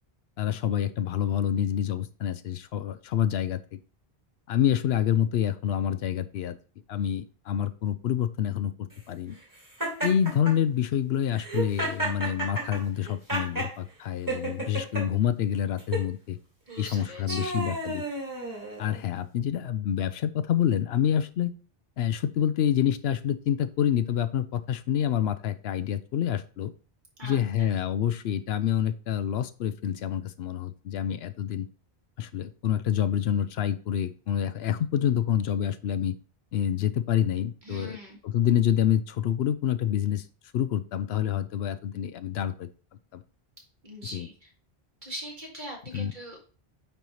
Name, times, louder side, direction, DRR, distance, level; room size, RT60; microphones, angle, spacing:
voice 1, 0.4-3.8 4.5-6.5 6.9-9.4 10.0-16.4 16.8-18.0 18.8-21.5 22.0-26.7 27.2-31.7 32.2-36.1 36.5-38.0 38.2-40.3 40.5-42.7 43.1-43.2 44.1-44.3 45.9-46.1, left 10 dB, 80° left, 13 dB, 0.8 m, -27 dB
Laughter, 9.8-10.5 11.3-13.7 14.3-15.0 15.8-16.1 16.8-19.0, right 2 dB, 20° right, 2.1 m, -32 dB
voice 2, 16.7-17.6 27.2-27.4 37.6-38.2 43.8-44.5 45.0-46.4, equal, 50° right, -1 dB, 2.2 m, -41 dB
9.1 x 4.3 x 3.1 m, 0.38 s
omnidirectional pair, 1.0 m